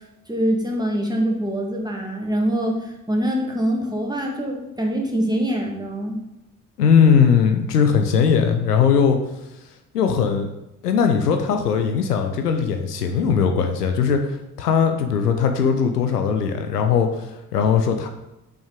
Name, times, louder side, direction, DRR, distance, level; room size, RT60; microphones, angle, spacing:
voice 1, 0.3-6.2, equal, 10° right, 0 dB, 2.0 m, -24 dB
voice 2, 6.8-9.2 9.9-10.5 10.8-18.1, left 6 dB, 85° left, 6 dB, 0.7 m, -19 dB
6.3 x 5.8 x 5.1 m, 0.91 s
figure-of-eight pair, 40°, 46 cm